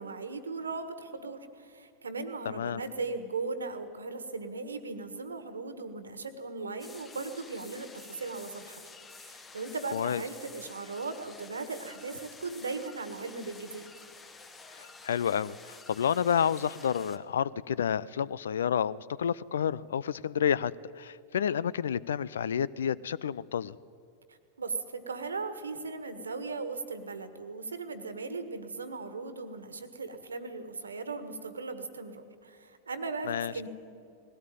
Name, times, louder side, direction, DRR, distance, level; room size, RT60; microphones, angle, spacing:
voice 1, 0.0-8.8 9.2-13.9 24.6-33.7, right 4 dB, 75° right, 10 dB, 1.6 m, -38 dB
sound 1, 6.8-17.2, left 4 dB, 20° left, 1.4 m, -50 dB
voice 2, 9.9-10.2 14.8-23.8 33.3-33.5, left 8 dB, 65° left, 21 dB, 0.5 m, -30 dB
20.0 x 17.0 x 9.1 m, 2.5 s
figure-of-eight pair, 90°, 0 cm